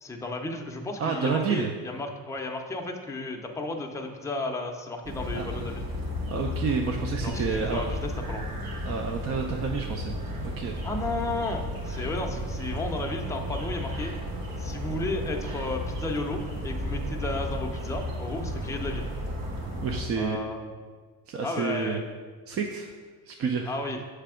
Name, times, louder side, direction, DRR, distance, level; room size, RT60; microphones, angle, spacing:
voice 1, 0.0-5.8 7.2-8.5 10.8-14.1 14.6-19.1 20.1-20.6 21.4-22.1 23.7-24.0, left 2 dB, 10° left, 1 dB, 0.6 m, -33 dB
voice 2, 1.0-1.7 5.3-5.5 6.3-7.9 8.8-10.8 12.0-12.4 19.8-20.4 21.3-22.0 22.5-22.9 23.3-23.7, right 5 dB, 40° right, 3 dB, 0.5 m, -30 dB
sound 1, 5.0-20.0, left 1 dB, 65° right, 1.6 m, -33 dB
6.7 x 3.3 x 4.9 m, 1.5 s
cardioid pair, 110°, 39 cm